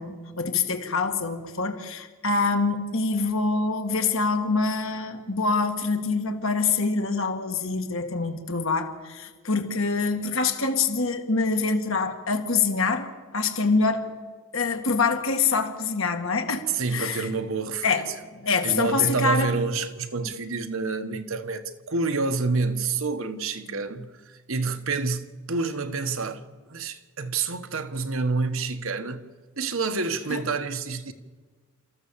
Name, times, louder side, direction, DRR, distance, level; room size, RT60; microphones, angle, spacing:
voice 1, 0.0-13.1 13.3-14.1 14.5-17.3 17.8-18.1 18.4-19.5 20.2-20.3 23.7-23.8 30.3-30.4, left 4 dB, 70° left, 2.0 m, -25 dB
voice 2, 16.7-18.0 18.6-26.4 26.7-29.2 29.6-31.1, right 4 dB, 70° right, 1.2 m, -28 dB
29.0 x 14.0 x 7.3 m
head